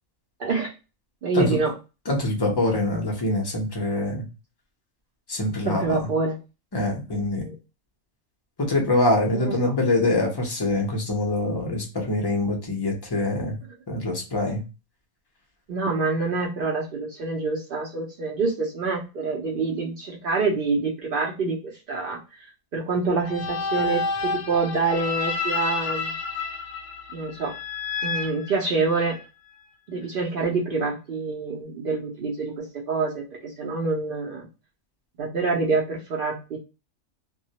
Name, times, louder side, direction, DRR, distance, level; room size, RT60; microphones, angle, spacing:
voice 1, 0.4-0.7 1.2-1.7 5.7-6.4 7.4-7.5 9.3-9.7 15.7-22.2 22.7-26.2 27.1-27.5 28.0-29.2 29.9-34.5 35.2-36.6, right 4 dB, 65° right, -2 dB, 0.5 m, -26 dB
voice 2, 2.1-4.3 5.3-6.1 6.7-7.5 8.6-13.6 13.9-14.6, left 2 dB, 35° left, 0 dB, 0.4 m, -24 dB
sound 1, 23.2-29.2, left 4 dB, 70° left, 0.9 m, -30 dB
2.2 x 2.1 x 2.7 m, 0.29 s
omnidirectional pair, 1.4 m